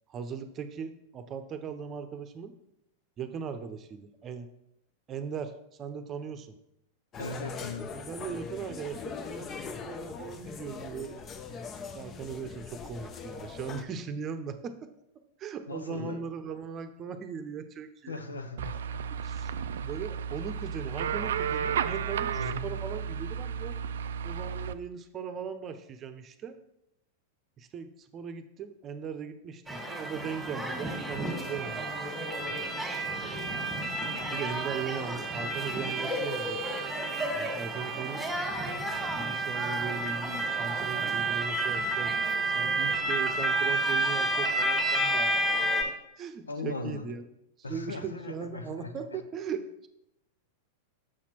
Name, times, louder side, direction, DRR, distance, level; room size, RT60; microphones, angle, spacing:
voice 1, 0.1-2.5 3.2-4.5 5.1-5.5 5.8-6.5 7.9-11.2 11.9-14.9 15.4-18.2 19.2-23.8 24.2-26.6 27.6-33.6 34.3-36.7 37.3-38.2 39.1-42.1 42.5-47.3 47.7-49.9, right 6 dB, 30° right, 9 dB, 0.7 m, -39 dB
sound 1, 7.1-13.8, left 6 dB, 30° left, 0.6 m, -41 dB
voice 2, 7.2-7.9 15.7-16.2 18.1-19.0 22.3-22.7 46.5-47.1 47.6-49.2, left 3 dB, 85° left, 8 dB, 0.7 m, -38 dB
sound 2, 18.6-24.7, right 8 dB, 70° right, 0.3 m, -33 dB
sound 3, 29.7-45.8, right 2 dB, ahead, 1.8 m, -30 dB
6.4 x 5.9 x 4.4 m, 0.83 s
figure-of-eight pair, 95°, 0 cm